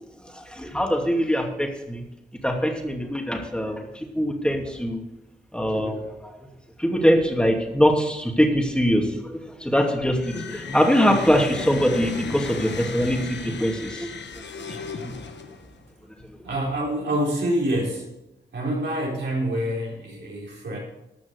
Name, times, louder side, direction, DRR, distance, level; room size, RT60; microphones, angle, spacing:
voice 1, 0.3-2.0 2.4-3.9 4.1-5.0 5.5-6.3 6.8-14.1 15.0-15.1, equal, 5° left, 2 dB, 2.6 m, -23 dB
sound 1, 10.1-15.8, left 5 dB, 80° left, 1.1 m, -35 dB
voice 2, 16.4-18.1 18.5-20.8, right 1 dB, 80° right, -3 dB, 4.1 m, -26 dB
13.0 x 6.1 x 6.7 m, 0.91 s
cardioid pair, 45°, 18 cm